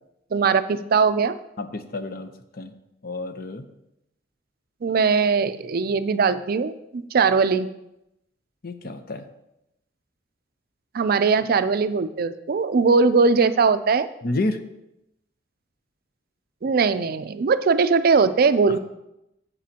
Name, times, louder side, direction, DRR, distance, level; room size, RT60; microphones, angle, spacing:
voice 1, 0.3-1.4 4.8-7.7 10.9-14.1 16.6-18.8, right 5 dB, 55° right, 12 dB, 0.4 m, -20 dB
voice 2, 1.6-2.7 3.0-3.6 8.6-9.2 14.2-14.6, left 2 dB, 55° left, 9 dB, 0.7 m, -29 dB
11.0 x 8.2 x 2.9 m, 0.87 s
head